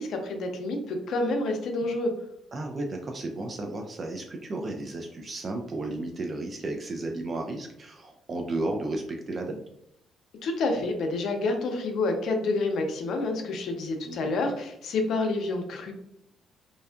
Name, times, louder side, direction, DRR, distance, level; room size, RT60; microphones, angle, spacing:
voice 1, 0.0-2.1 10.4-15.9, left 2 dB, 65° left, 4 dB, 0.5 m, -28 dB
voice 2, 2.5-9.6 14.0-14.3, right 2 dB, 35° right, 2 dB, 0.3 m, -33 dB
2.5 x 2.3 x 2.2 m, 0.78 s
cardioid pair, 100°, 0 cm